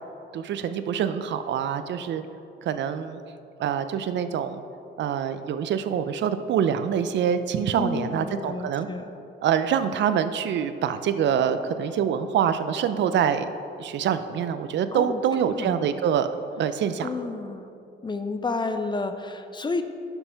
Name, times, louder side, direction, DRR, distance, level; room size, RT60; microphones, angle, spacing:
voice 1, 0.3-2.2 2.6-3.2 3.6-4.6 5.0-8.9 9.4-13.5 13.8-17.1, right 8 dB, 65° right, 11 dB, 0.5 m, -25 dB
voice 2, 7.7-9.1 14.9-15.7 17.0-17.7 18.0-19.8, left 3 dB, 25° left, 8 dB, 0.5 m, -31 dB
7.1 x 5.4 x 5.6 m, 2.7 s
cardioid pair, 90°, 20 cm